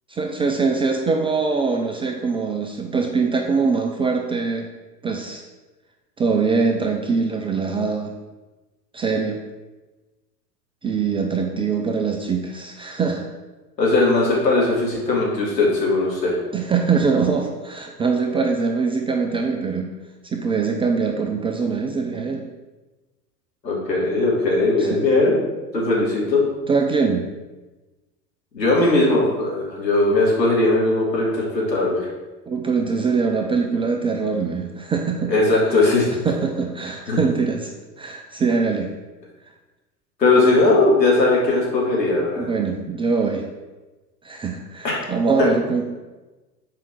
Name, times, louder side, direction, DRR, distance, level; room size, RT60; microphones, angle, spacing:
voice 1, 0.1-4.6 5.0-5.4 6.2-8.1 8.9-9.4 10.8-13.2 16.5-19.9 20.3-22.4 24.8-25.1 26.7-27.3 32.5-35.3 36.2-37.7 38.0-38.9 42.4-43.5 44.2-45.8, right 4 dB, 10° right, 2 dB, 0.5 m, -23 dB
voice 2, 13.8-16.4 23.6-25.4 25.7-26.4 28.5-32.1 35.3-36.1 37.1-37.2 40.2-42.5 44.8-45.0 45.4-45.5, left 2 dB, 85° left, -5 dB, 3.2 m, -19 dB
7.5 x 5.1 x 6.3 m, 1.2 s
figure-of-eight pair, 90°, 49 cm